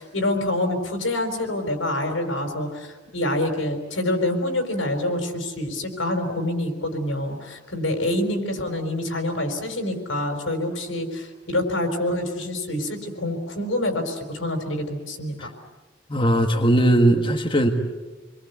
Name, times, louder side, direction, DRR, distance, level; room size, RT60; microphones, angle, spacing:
voice 1, 0.0-15.4, left 1 dB, 85° left, 5 dB, 4.9 m, -26 dB
voice 2, 16.1-17.7, right 1 dB, 25° left, 2 dB, 1.7 m, -19 dB
28.5 x 22.5 x 8.3 m, 1.2 s
head